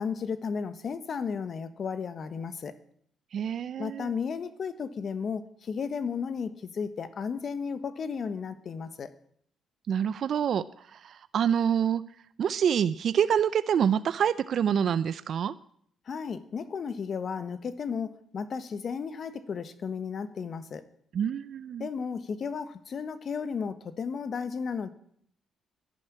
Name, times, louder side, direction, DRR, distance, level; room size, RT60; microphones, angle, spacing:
voice 1, 0.0-2.7 3.8-9.1 16.1-20.8 21.8-24.9, left 6 dB, 50° left, 12 dB, 1.3 m, -34 dB
voice 2, 3.3-4.1 9.9-10.6 11.0-12.0 12.4-15.5 21.1-21.9, right 8 dB, 60° right, 15 dB, 0.5 m, -26 dB
11.0 x 10.5 x 9.9 m, 0.65 s
cardioid pair, 90°, 0 cm